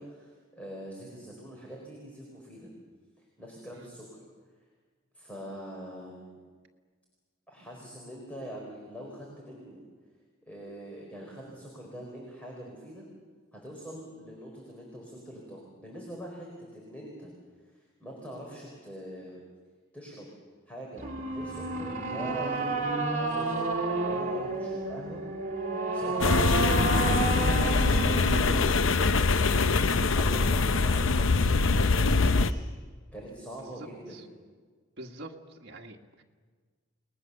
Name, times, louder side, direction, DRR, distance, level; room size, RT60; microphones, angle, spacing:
voice 1, 0.0-2.7 3.2-4.0 5.1-6.4 7.5-9.8 10.5-13.0 13.5-17.3 17.6-19.4 19.9-20.3 20.7-25.2 25.9-26.3 26.9-29.6 30.1-32.6 33.1-34.2, equal, 5° left, -2 dB, 4.5 m, -44 dB
sound 1, 21.0-29.0, right 2 dB, 40° right, 2.6 m, -31 dB
sound 2, 26.2-32.5, left 3 dB, 70° left, 0.7 m, -23 dB
voice 2, 33.6-34.2 35.0-36.2, right 1 dB, 55° right, 0 dB, 1.7 m, -45 dB
30.0 x 20.0 x 6.9 m, 1.5 s
head